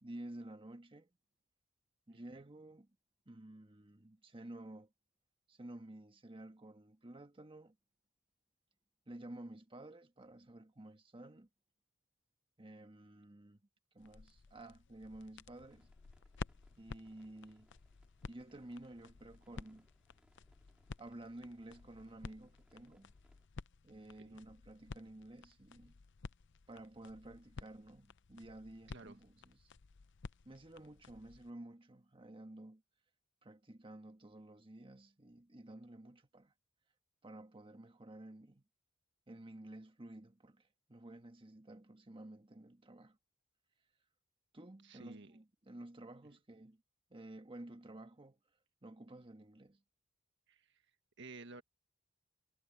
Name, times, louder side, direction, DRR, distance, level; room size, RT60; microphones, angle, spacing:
voice 1, 0.0-1.1 2.1-2.9 3.3-4.9 5.5-7.8 9.1-11.5 12.6-13.6 13.9-15.9 16.8-17.7 18.3-19.9 21.0-23.1 23.8-26.0 26.7-29.7 30.4-32.8 33.4-36.5 37.2-38.6 39.3-43.2 44.5-46.8 47.1-48.4 48.8-49.8, right 1 dB, 25° right, 1.4 m, -52 dB
sound 1, 14.0-31.5, left 4 dB, 60° left, 0.6 m, -53 dB
sound 2, 15.6-23.5, equal, 5° right, 3.1 m, -74 dB
voice 2, 44.8-45.4 50.5-50.8 51.2-51.6, right 3 dB, 60° right, 1.5 m, -53 dB
head